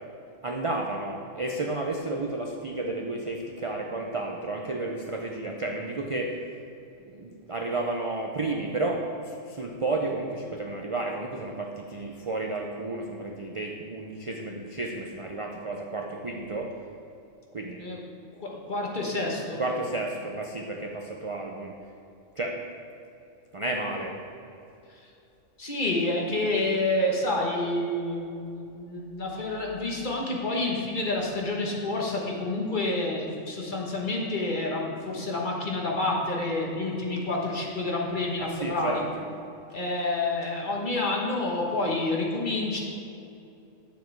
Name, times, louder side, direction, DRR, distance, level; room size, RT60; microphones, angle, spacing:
voice 1, 0.4-6.3 7.1-16.7 17.5-17.8 19.6-21.7 22.4-22.6 23.5-24.1 38.4-39.2, right 2 dB, 35° right, 0 dB, 0.5 m, -32 dB
voice 2, 18.4-19.6 24.9-25.1 25.6-39.0 39.7-42.8, left 2 dB, 40° left, -1 dB, 1.4 m, -28 dB
9.4 x 7.0 x 4.6 m, 2.7 s
omnidirectional pair, 1.4 m